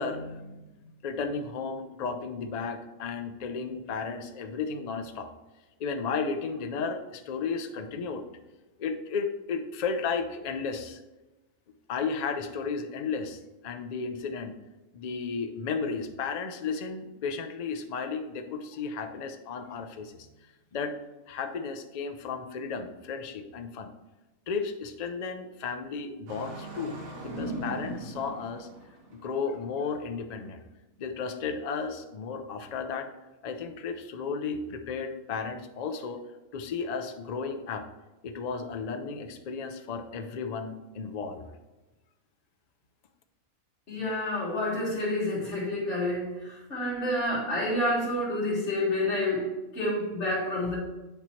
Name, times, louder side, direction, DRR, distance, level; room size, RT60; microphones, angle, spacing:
voice 1, 0.0-5.3 5.8-8.2 8.8-11.0 11.9-14.5 14.9-20.3 20.7-21.0 21.3-23.9 24.5-28.7 29.1-30.6 31.0-33.1 33.4-36.2 36.5-37.9 38.2-41.4, left 5 dB, 80° left, 7 dB, 0.3 m, -34 dB
Engine starting, 26.3-29.3, right 1 dB, 90° right, 1.5 m, -38 dB
voice 2, 43.9-50.8, left 1 dB, 55° left, -8 dB, 1.8 m, -29 dB
8.7 x 3.0 x 4.3 m, 1.0 s
omnidirectional pair, 1.4 m